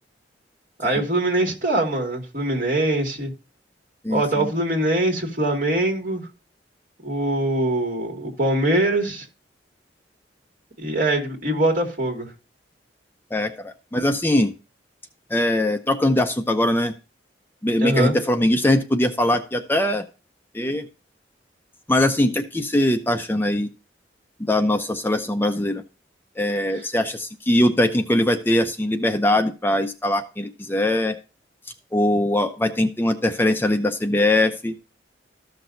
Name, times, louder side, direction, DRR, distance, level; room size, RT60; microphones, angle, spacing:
voice 1, 0.8-3.3 4.1-6.3 7.0-9.3 10.8-12.3 17.8-18.2, right 1 dB, 50° right, 2.3 m, -23 dB
voice 2, 4.0-4.5 13.3-14.5 15.3-16.9 17.6-20.0 20.5-20.9 21.9-23.7 24.5-25.8 26.4-31.2 31.9-34.7, left 1 dB, 10° left, 0.6 m, -21 dB
14.0 x 6.0 x 2.6 m
head